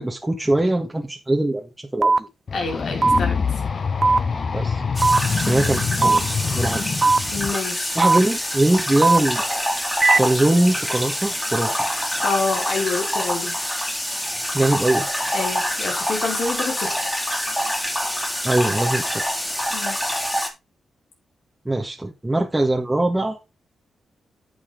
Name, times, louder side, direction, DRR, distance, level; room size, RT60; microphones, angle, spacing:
voice 1, 0.0-2.3 4.5-4.8 5.5-6.8 7.9-9.4 10.1-11.8 14.5-15.1 18.4-19.3 21.6-23.4, right 1 dB, 15° right, 1.8 m, -22 dB
sound 1, 2.0-2.2 3.0-3.2 4.0-4.2 5.0-5.2 6.0-6.2 7.0-7.2 8.0-8.2 9.0-9.2 10.0-10.2, right 3 dB, 35° right, 0.6 m, -16 dB
voice 2, 2.5-3.4 7.3-8.0 12.2-13.6 15.3-17.0 19.7-20.0, left 4 dB, 70° left, 4.4 m, -27 dB
sound 2, 2.5-7.5, left 5 dB, 50° left, 1.4 m, -25 dB
sound 3, 4.9-20.5, equal, 10° left, 3.3 m, -26 dB
10.0 x 6.0 x 4.0 m
cardioid pair, 70°, 0 cm